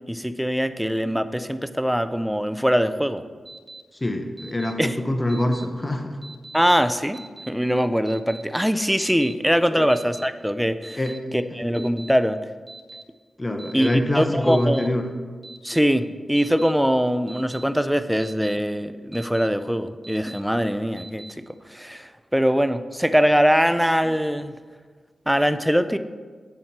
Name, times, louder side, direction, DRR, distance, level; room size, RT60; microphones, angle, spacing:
voice 1, 0.1-3.2 4.8-5.0 6.5-7.2 7.5-11.0 11.3-12.4 13.7-13.9 14.1-14.9 15.6-21.2 21.7-24.5 25.3-26.0, equal, 5° right, 11 dB, 0.5 m, -22 dB
Alarm, 3.5-3.8 4.4-4.7 5.3-5.7 6.2-6.6 7.1-7.5 8.1-8.4 9.0-9.3 9.9-10.3 10.8-11.2 11.7-12.1 12.7-13.0 13.6-13.9 14.5-14.9 15.4-15.8 16.4-16.7 17.3-17.6 18.2-18.6 19.1-19.5 20.0-20.4 21.0-21.3, right 3 dB, 35° right, 1.5 m, -42 dB
voice 2, 3.9-6.2 9.7-9.9 11.0-11.4 13.4-15.1, left 1 dB, 25° left, 5 dB, 0.9 m, -25 dB
8.8 x 4.3 x 6.1 m, 1.5 s
cardioid pair, 45°, 0 cm